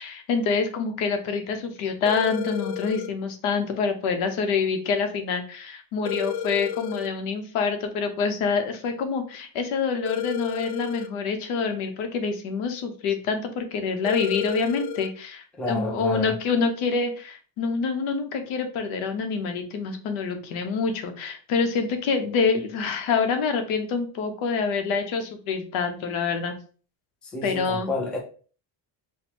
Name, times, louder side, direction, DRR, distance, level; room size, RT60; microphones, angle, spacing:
voice 1, 0.0-26.6 27.4-27.9, left 5 dB, 80° left, 6 dB, 0.9 m, -26 dB
sound 1, 2.1-3.1 6.1-7.1 10.1-11.1 14.1-15.1, left 8 dB, 55° left, 0.6 m, -31 dB
voice 2, 15.5-16.4 27.2-28.2, left 3 dB, ahead, 0 dB, 0.4 m, -30 dB
4.3 x 2.2 x 2.7 m, 0.40 s
cardioid pair, 155°, 48 cm